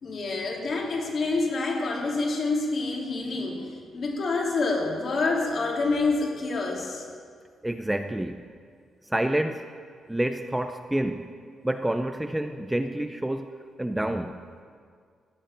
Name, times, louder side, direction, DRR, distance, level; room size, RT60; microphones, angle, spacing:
voice 1, 0.0-3.7 3.9-7.1, left 3 dB, 45° left, -1 dB, 2.9 m, -27 dB
voice 2, 7.6-8.4 9.1-9.7 10.1-11.3 11.6-14.3, right 1 dB, 5° right, 7 dB, 0.5 m, -28 dB
15.5 x 8.1 x 8.9 m, 2.1 s
cardioid pair, 135°, 0 cm